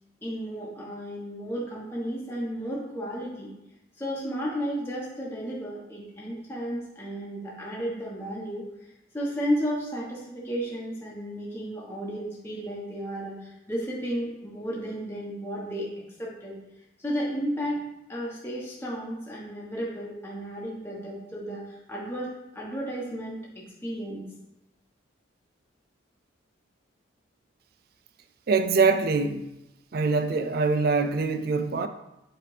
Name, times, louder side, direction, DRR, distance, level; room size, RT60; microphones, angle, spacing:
voice 1, 0.2-3.5 4.0-8.6 9.1-15.9 16.2-16.5 17.0-17.8 18.1-24.2, equal, 10° left, 1.1 m, -33 dB
voice 2, 28.5-29.5 29.9-31.9, right 4 dB, 50° right, 0.4 m, -24 dB
7.6 x 3.3 x 4.9 m
head